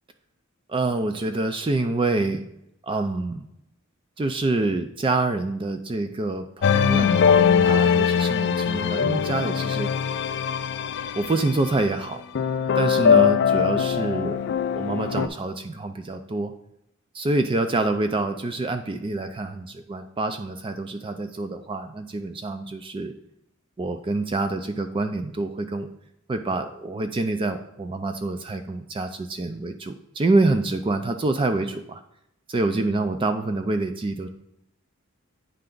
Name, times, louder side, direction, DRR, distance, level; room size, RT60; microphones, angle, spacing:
voice 1, 0.7-2.4 2.8-3.5 4.2-9.9 11.1-12.2 12.8-14.4 14.7-16.5 17.1-23.1 23.8-25.9 26.3-32.0 32.5-34.3, right 2 dB, 25° right, 7 dB, 0.4 m, -26 dB
sound 1, 6.6-11.8 12.3-15.3, left 7 dB, 55° left, 0.3 m, -21 dB
8.8 x 3.3 x 3.8 m, 0.80 s
head